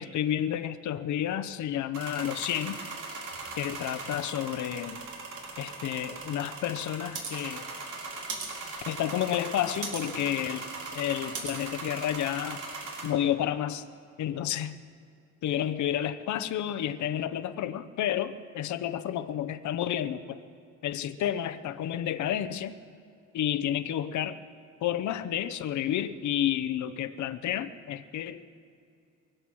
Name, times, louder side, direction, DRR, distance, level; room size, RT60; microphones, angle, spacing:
voice 1, 0.0-2.8 3.6-5.0 5.6-7.7 8.9-10.7 10.9-12.6 13.0-13.8 14.2-14.8 15.4-20.4 20.8-22.8 23.3-24.4 24.8-28.4, left 11 dB, 70° left, 12 dB, 0.8 m, -30 dB
sound 1, 1.9-13.1, right 3 dB, 75° right, 3.5 m, -39 dB
23.5 x 8.0 x 6.2 m, 2.4 s
cardioid pair, 90°, 30 cm